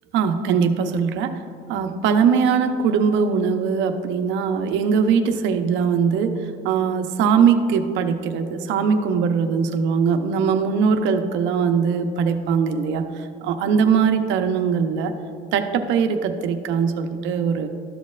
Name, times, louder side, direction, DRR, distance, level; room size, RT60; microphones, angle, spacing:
voice 1, 0.1-1.4 1.7-6.4 6.6-13.1 13.4-15.1 15.5-17.7, right 6 dB, 70° right, 7 dB, 0.7 m, -21 dB
13.0 x 6.4 x 2.4 m, 2.4 s
cardioid pair, 115°, 20 cm